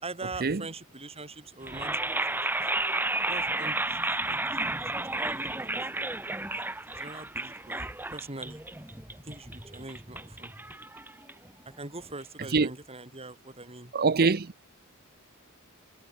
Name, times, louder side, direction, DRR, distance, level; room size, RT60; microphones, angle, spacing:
voice 1, 0.0-2.5 3.3-6.1 6.5-6.6 7.0-8.6 9.3-10.5 11.8-13.9, right 3 dB, 30° right, 4.3 m, -43 dB
sound 1, 1.6-11.7, right 2 dB, 10° right, 1.3 m, -32 dB
voice 2, 13.9-14.5, right 4 dB, 45° right, 0.7 m, -23 dB
head